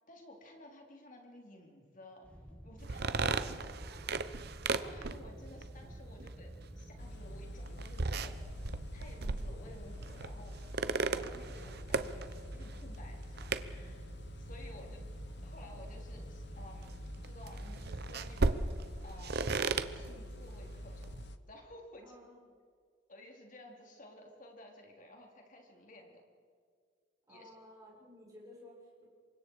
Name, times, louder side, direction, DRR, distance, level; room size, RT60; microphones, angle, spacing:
voice 1, 0.1-2.3 2.6-3.4 4.8-8.4 8.9-10.6 11.1-14.9 15.4-17.0 17.2-18.6 19.0-21.1 21.5-22.1 23.1-26.2 27.3-27.5, left 1 dB, 45° left, 1 dB, 4.0 m, -54 dB
Wind / Boat Water vehicle, 2.2-18.8, equal, 5° left, 2.4 m, -51 dB
sound 1, 2.8-21.3, right 3 dB, 55° right, 0.9 m, -38 dB
voice 2, 3.1-4.1 14.6-15.1 22.0-22.4 27.3-29.1, equal, 20° right, -6 dB, 7.8 m, -56 dB
sound 2, 7.0-21.4, left 1 dB, 65° left, 1.1 m, -47 dB
27.5 x 24.5 x 4.9 m, 2.1 s
head